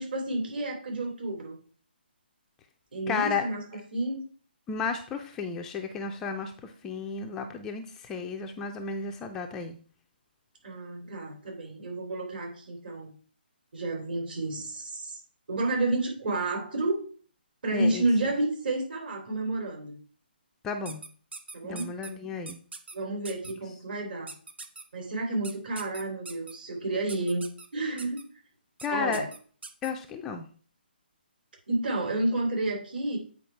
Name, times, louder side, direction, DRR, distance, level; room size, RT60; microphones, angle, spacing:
voice 1, 0.0-1.6 2.9-3.6 3.9-4.3 10.6-13.1 13.7-15.2 15.5-17.0 17.6-20.0 21.5-21.9 22.9-24.3 24.9-27.4 27.7-28.2 28.9-29.3 31.7-33.2, right 2 dB, 60° right, 2 dB, 3.3 m, -30 dB
voice 2, 3.1-3.4 4.7-9.8 17.7-18.1 20.6-21.0 21.6-22.6 28.8-29.3 29.8-30.5, left 5 dB, 10° left, 4 dB, 0.4 m, -33 dB
sound 1, 20.9-22.1 22.5-22.9 23.2-23.5 24.3-24.8 25.4-26.5 27.1-27.7 28.0-28.2 28.8-28.9 29.1-29.9, right 3 dB, 75° right, 1.1 m, -42 dB
8.5 x 4.6 x 4.5 m, 0.43 s
hypercardioid pair, 165°, 6 cm